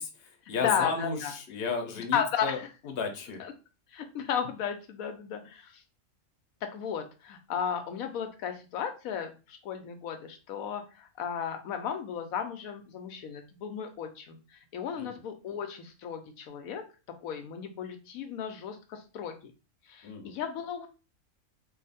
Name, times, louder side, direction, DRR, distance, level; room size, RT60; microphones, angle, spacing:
voice 1, 0.0-2.6 2.8-3.4 15.0-15.2 20.0-20.4, left 5 dB, 55° left, 4 dB, 0.9 m, -34 dB
voice 2, 0.6-1.3 2.1-2.7 3.4-3.5 3.9-5.8 6.7-14.4 14.7-16.8 17.2-19.5 19.9-20.9, left 8 dB, 85° left, 6 dB, 1.0 m, -34 dB
2.8 x 2.4 x 4.0 m, 0.32 s
omnidirectional pair, 1.4 m